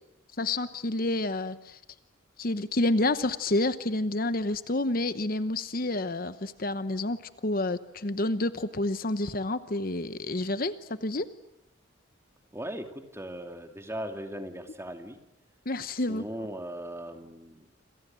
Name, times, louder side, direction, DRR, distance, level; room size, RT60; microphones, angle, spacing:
voice 1, 0.4-1.8 2.4-7.2 7.4-11.3 15.7-16.2, left 2 dB, 45° left, 12 dB, 1.0 m, -29 dB
voice 2, 12.5-15.2 16.1-17.7, equal, 15° right, 6 dB, 2.6 m, -38 dB
28.5 x 27.0 x 7.7 m, 0.85 s
head